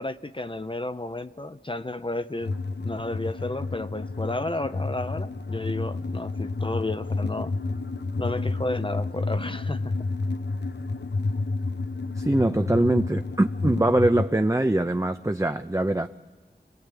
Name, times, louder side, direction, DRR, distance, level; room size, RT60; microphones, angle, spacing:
voice 1, 0.0-2.5 2.8-7.6 8.2-9.9, left 2 dB, 30° left, 0.7 m, -32 dB
sound 1, 2.4-14.3, left 3 dB, 70° left, 0.9 m, -30 dB
voice 2, 12.2-16.1, right 1 dB, 15° right, 0.7 m, -23 dB
26.5 x 18.5 x 9.0 m
wide cardioid pair, 45°, 18 cm